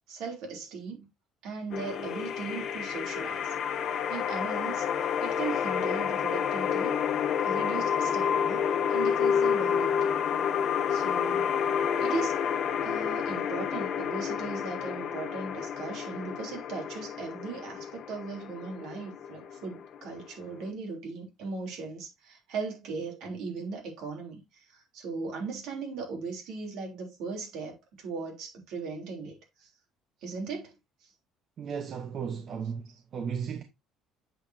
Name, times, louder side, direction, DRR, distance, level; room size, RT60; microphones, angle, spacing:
voice 1, 0.1-1.1 1.4-3.5 4.1-4.9 5.2-7.0 7.4-10.1 10.9-11.5 12.0-12.4 12.8-29.7 30.2-30.7, right 4 dB, 65° right, 3.3 m, -38 dB
sound 1, 1.7-20.7, left 8 dB, 45° left, 1.2 m, -29 dB
voice 2, 31.6-33.6, right 7 dB, 40° right, 0.9 m, -35 dB
7.9 x 6.9 x 2.7 m
cardioid pair, 155°, 0 cm